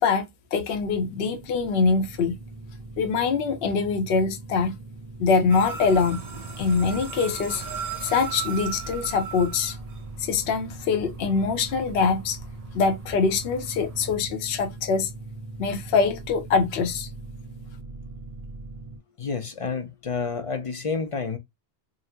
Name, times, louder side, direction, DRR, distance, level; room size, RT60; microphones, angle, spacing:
voice 1, 0.0-2.3 3.0-4.8 5.2-6.2 6.6-7.6 8.0-9.8 10.2-12.4 12.7-15.1 15.6-17.1, left 5 dB, 70° left, 0.8 m, -24 dB
sound 1, 0.7-19.0, right 2 dB, 30° right, 1.5 m, -41 dB
sound 2, 5.5-14.2, right 6 dB, 45° right, 0.5 m, -38 dB
voice 2, 19.2-21.4, left 5 dB, 40° left, 0.5 m, -29 dB
3.8 x 2.0 x 2.7 m
omnidirectional pair, 1.1 m